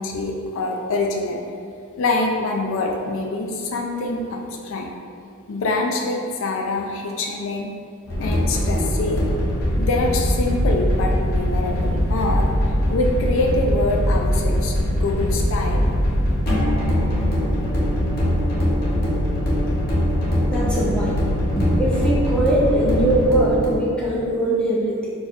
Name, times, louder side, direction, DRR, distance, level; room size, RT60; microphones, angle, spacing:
voice 1, 0.0-1.4 2.0-4.9 5.5-7.7 8.2-9.3 9.8-12.5 12.9-15.9, left 2 dB, 65° left, 0 dB, 0.4 m, -25 dB
sound 1, 8.1-23.8, equal, 45° left, 0.8 m, -21 dB
voice 2, 20.5-21.2 21.5-25.1, right 1 dB, 5° left, -5 dB, 0.4 m, -21 dB
4.1 x 2.4 x 2.5 m, 2.3 s
head